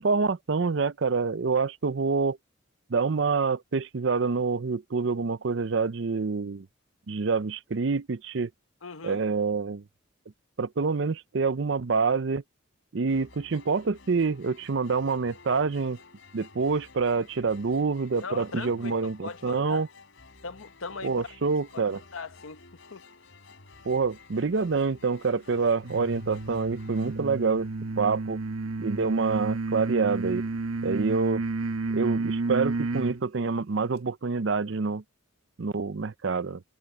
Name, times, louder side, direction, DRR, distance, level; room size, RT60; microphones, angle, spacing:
voice 1, 0.0-2.4 2.9-6.7 7.1-8.5 9.0-9.8 10.6-12.4 12.9-16.0 16.3-19.9 21.0-22.0 23.9-27.7 28.0-28.4 28.8-30.5 30.8-31.4 31.9-35.0 35.6-36.6, right 4 dB, 60° right, 0.5 m, -27 dB
voice 2, 8.8-9.2 18.2-19.8 20.4-21.4 21.7-21.8 22.1-22.6 22.9-23.0, left 4 dB, 85° left, 1.0 m, -39 dB
sound 1, 13.1-28.3, left 3 dB, 65° left, 3.4 m, -53 dB
sound 2, 25.8-33.2, right 3 dB, 90° right, 1.2 m, -31 dB
head